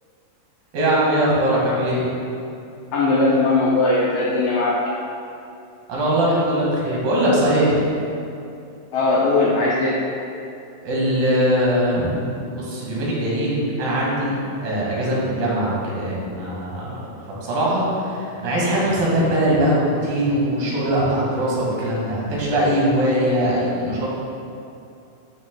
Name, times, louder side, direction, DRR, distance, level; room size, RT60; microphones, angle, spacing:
voice 1, 0.7-2.1 5.9-7.8 10.8-12.2 12.5-14.4 14.6-17.0 17.4-24.1, right 1 dB, 80° right, -6 dB, 3.5 m, -21 dB
voice 2, 2.9-4.8 8.9-10.0, left 2 dB, 90° left, -5 dB, 1.4 m, -19 dB
12.0 x 6.2 x 2.2 m, 2.6 s
omnidirectional pair, 3.9 m